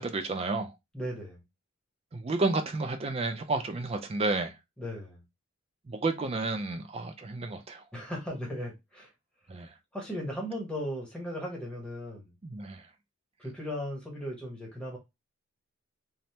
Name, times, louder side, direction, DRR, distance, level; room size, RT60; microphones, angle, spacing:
voice 1, 0.0-0.8 2.1-4.6 5.9-7.8 9.5-9.7 12.4-12.9, right 3 dB, 30° right, 0.3 m, -31 dB
voice 2, 0.9-1.4 4.8-5.2 7.9-9.1 9.9-12.4 13.4-15.0, equal, 5° left, 0.8 m, -37 dB
3.2 x 2.0 x 2.7 m
head